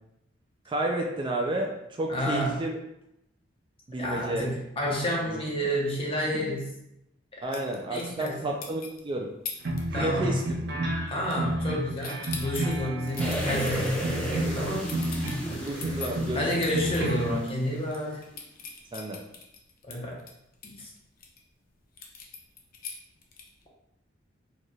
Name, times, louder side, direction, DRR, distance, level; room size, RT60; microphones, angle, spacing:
voice 1, 0.7-2.7 3.9-4.5 5.3-5.4 7.4-9.3 9.9-10.4 10.7-11.0 15.6-16.5 18.9-19.2, right 1 dB, 25° right, 1 dB, 0.4 m, -31 dB
voice 2, 2.1-2.6 4.0-6.7 7.9-8.4 9.9-10.3 11.1-14.9 15.4-15.6 16.3-18.2 19.9-20.2 20.6-20.9, equal, 30° left, -2 dB, 0.9 m, -30 dB
sound 1, 7.5-8.4 8.6-9.0 9.5-9.8 10.1-10.4 10.7-11.7 12.0-17.0 17.4-17.5 17.8-21.4 22.0-23.6, left 6 dB, 50° left, 0.6 m, -41 dB
sound 2, 9.6-15.5 15.8-17.3, right 1 dB, 60° right, 0.7 m, -31 dB
sound 3, 13.2-18.0 18.3-18.4, right 1 dB, 5° left, 0.8 m, -35 dB
4.5 x 3.2 x 2.4 m, 0.82 s
head